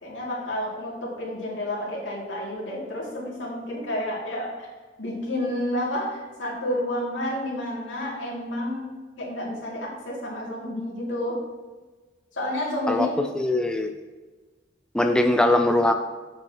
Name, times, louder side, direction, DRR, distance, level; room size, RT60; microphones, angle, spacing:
voice 1, 0.0-4.7 5.0-8.9 9.2-11.4 12.3-13.1, left 1 dB, 80° left, -5 dB, 2.3 m, -30 dB
voice 2, 13.3-13.9 14.9-15.9, left 1 dB, 5° left, 5 dB, 0.3 m, -21 dB
8.0 x 6.8 x 2.8 m, 1.3 s
head